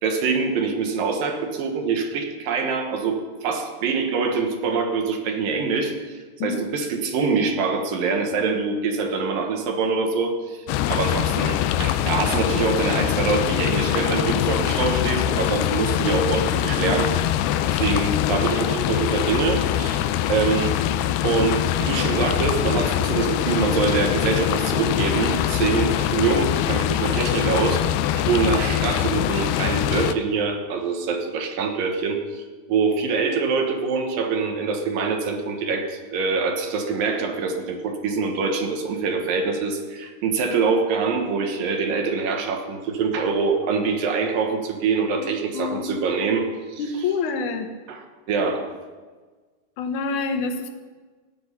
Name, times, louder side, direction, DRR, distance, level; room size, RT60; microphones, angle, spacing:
voice 1, 0.0-17.2 17.7-20.8 21.2-27.9 28.1-46.8 47.9-48.0 48.3-48.7, right 4 dB, 65° right, 4 dB, 2.9 m, -24 dB
sound 1, 10.7-30.1, left 12 dB, 85° left, 2.6 m, -23 dB
voice 2, 45.1-45.9 46.8-47.7 49.8-50.7, left 4 dB, 65° left, 6 dB, 2.2 m, -27 dB
16.5 x 6.4 x 9.9 m, 1.4 s
omnidirectional pair, 4.5 m